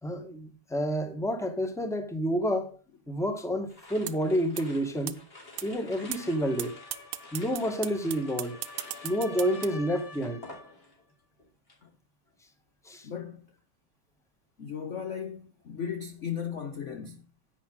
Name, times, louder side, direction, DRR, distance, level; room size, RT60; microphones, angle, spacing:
voice 1, 0.0-2.8 3.1-5.2 5.6-6.7 7.3-8.6 9.0-10.4 12.8-13.1, equal, ahead, 1.4 m, -29 dB
sound 1, 3.7-11.1 11.4-11.9, left 2 dB, 25° left, 3.3 m, -50 dB
sound 2, 4.1-4.2 4.6-4.7 5.1-5.2 5.6-5.7 6.1-6.2 6.6-6.7 6.9-9.7, right 14 dB, 85° right, 1.6 m, -34 dB
sound 3, 5.9-10.8, left 4 dB, 80° left, 2.4 m, -49 dB
voice 2, 13.0-13.5 14.6-17.3, left 8 dB, 50° left, 0.9 m, -36 dB
10.5 x 8.9 x 3.9 m
omnidirectional pair, 2.4 m